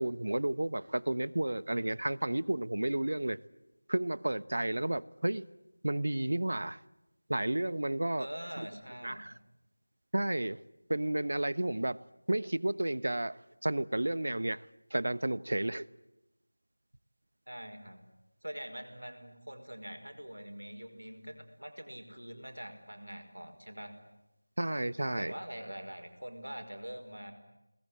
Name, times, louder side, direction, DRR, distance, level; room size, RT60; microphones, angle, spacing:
voice 1, 0.0-3.4 3.9-5.4 5.8-6.8 7.3-8.3 8.6-8.7 9.0-9.3 10.1-10.6 10.9-12.0 12.3-14.6 14.9-15.8 24.6-25.3, right 1 dB, 55° right, 1.0 m, -32 dB
voice 2, 8.2-9.3 17.5-18.0 18.4-23.9 25.2-27.3, equal, 80° right, 5.3 m, -44 dB
29.0 x 20.5 x 9.8 m
figure-of-eight pair, 170°, 0 cm